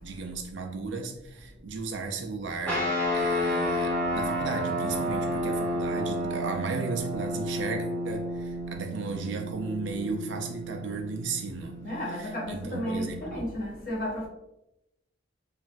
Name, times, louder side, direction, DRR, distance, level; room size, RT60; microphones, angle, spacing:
voice 1, 0.0-2.9 3.1-13.5, right 3 dB, 75° right, 0.4 m, -35 dB
sound 1, 2.6-13.3, equal, 10° left, 1.2 m, -31 dB
voice 2, 11.8-14.3, equal, 50° left, 0.9 m, -33 dB
3.0 x 2.4 x 2.5 m
head